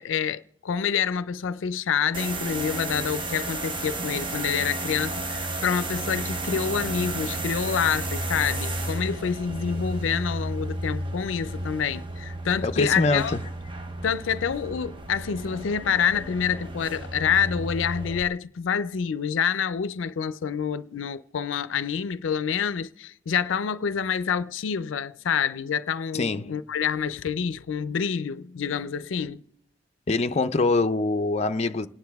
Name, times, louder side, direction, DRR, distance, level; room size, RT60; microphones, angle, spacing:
voice 1, 0.0-13.4 14.0-29.4, left 7 dB, 90° left, 0.4 m, -27 dB
sound 1, 2.1-18.2, right 2 dB, 25° right, 0.9 m, -32 dB
voice 2, 12.6-13.4 26.1-26.5 30.1-31.9, left 3 dB, 35° left, 0.5 m, -24 dB
28.0 x 9.6 x 3.5 m
head